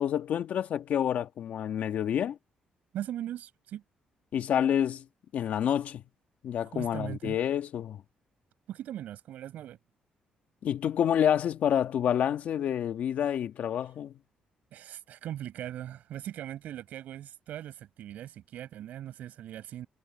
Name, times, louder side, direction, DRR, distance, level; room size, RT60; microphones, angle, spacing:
voice 1, 0.0-2.4 4.3-5.0 5.3-6.0 6.4-8.0 10.6-14.1, left 9 dB, 65° left, 1.8 m, -28 dB
voice 2, 2.9-3.8 6.6-7.4 8.7-9.8 14.7-19.9, right 11 dB, 80° right, 5.9 m, -40 dB
cardioid pair, 120°, 3 cm